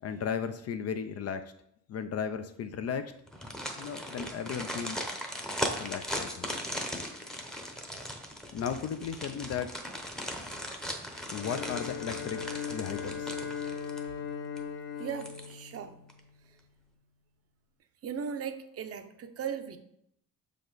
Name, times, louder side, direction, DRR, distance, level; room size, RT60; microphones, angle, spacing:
voice 1, 0.0-1.5 1.9-3.1 3.8-5.0 5.8-6.5 8.5-9.7 11.3-12.4 12.7-13.4, left 7 dB, 45° left, 9 dB, 0.5 m, -35 dB
sound 1, 3.3-14.2 14.6-14.7 15.1-15.8 16.1-16.2, equal, ahead, 0.8 m, -38 dB
Bowed string instrument, 11.2-16.4, left 7 dB, 70° left, 0.9 m, -39 dB
voice 2, 15.0-15.9 18.0-19.8, right 7 dB, 45° right, 8 dB, 0.7 m, -37 dB
6.5 x 5.0 x 4.0 m, 0.73 s
cardioid pair, 135°, 34 cm